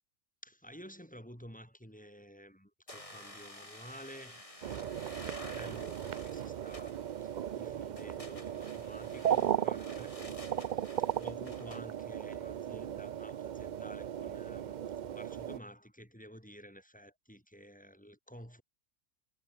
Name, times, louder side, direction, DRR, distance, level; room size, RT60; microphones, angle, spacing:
voice 1, 0.4-18.6, equal, 5° left, 7.8 m, -52 dB
sound 1, 2.9-11.8, left 1 dB, 25° left, 4.9 m, -51 dB
sound 2, 4.6-15.6, right 10 dB, 65° right, 0.4 m, -36 dB
omnidirectional pair, 1.4 m